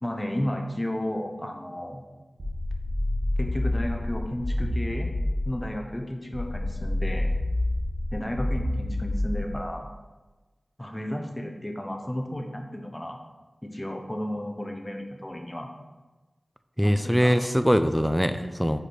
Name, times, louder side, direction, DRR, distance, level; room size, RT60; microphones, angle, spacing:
voice 1, 0.0-2.0 3.4-5.1 5.5-7.3 8.1-9.9 10.8-13.2 13.6-15.7 16.8-17.5, left 1 dB, 20° left, 3 dB, 0.9 m, -33 dB
sound 1, 2.4-5.6 6.3-9.6, left 1 dB, 70° right, 1.3 m, -28 dB
voice 2, 16.8-18.8, equal, ahead, 10 dB, 0.5 m, -22 dB
4.9 x 4.8 x 4.4 m, 1.2 s
cardioid pair, 40°, 0 cm